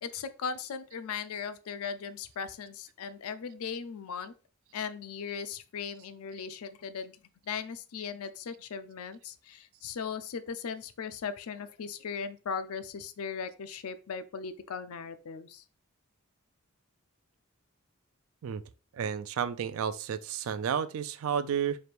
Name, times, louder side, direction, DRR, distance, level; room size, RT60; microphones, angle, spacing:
voice 1, 0.0-4.3 4.7-7.2 7.4-15.6, left 6 dB, 75° left, 0.4 m, -38 dB
voice 2, 18.9-21.8, right 7 dB, 65° right, 0.3 m, -31 dB
3.2 x 2.5 x 4.3 m
head